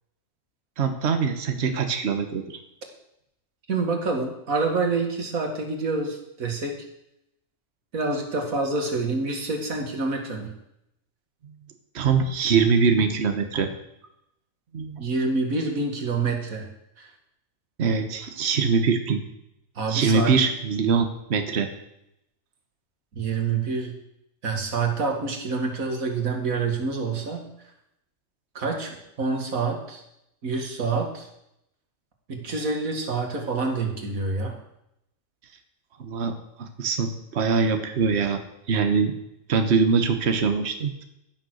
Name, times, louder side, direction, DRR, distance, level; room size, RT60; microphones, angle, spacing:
voice 1, 0.8-2.6 11.9-13.7 14.7-15.1 17.8-19.2 19.9-21.7 36.0-36.3 36.6-38.4 38.7-39.1 39.5-41.0, right 5 dB, 55° right, 6 dB, 1.4 m, -23 dB
voice 2, 3.7-6.8 7.9-10.5 15.0-16.7 17.0-17.1 19.8-20.3 23.2-24.0 24.4-27.5 28.5-30.0 30.4-31.3 32.3-34.6, right 4 dB, 90° right, 3 dB, 2.4 m, -27 dB
15.0 x 6.7 x 6.5 m, 0.80 s
omnidirectional pair, 1.4 m